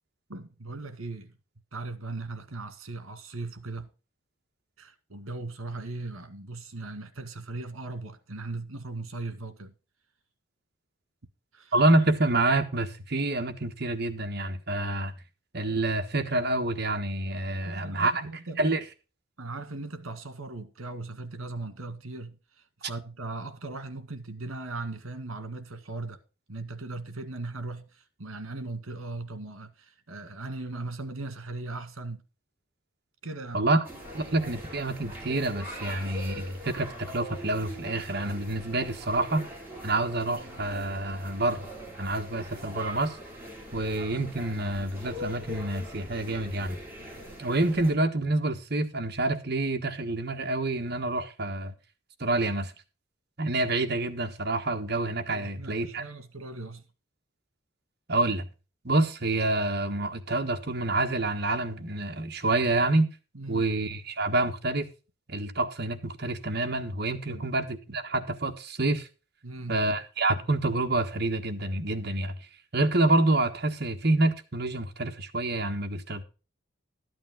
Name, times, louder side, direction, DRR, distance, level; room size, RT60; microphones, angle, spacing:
voice 1, 0.3-1.3 1.7-3.9 4.8-9.7 11.5-11.7 17.6-18.6 19.4-22.4 22.8-26.2 26.5-32.2 33.2-33.6 55.3-56.8 63.3-63.7 67.3-67.5 69.4-69.8, right 2 dB, 80° right, 1.9 m, -38 dB
voice 2, 11.7-15.1 15.5-18.3 18.6-18.8 33.5-33.8 34.1-39.4 39.8-41.7 42.0-43.2 43.7-46.8 47.4-51.7 52.2-52.7 53.4-56.0 58.1-58.5 58.8-63.1 63.5-64.9 65.3-69.1 69.7-72.5 72.7-76.2, right 2 dB, 50° right, 1.4 m, -27 dB
sound 1, 33.8-47.9, equal, 10° right, 4.2 m, -42 dB
13.0 x 8.7 x 3.8 m
head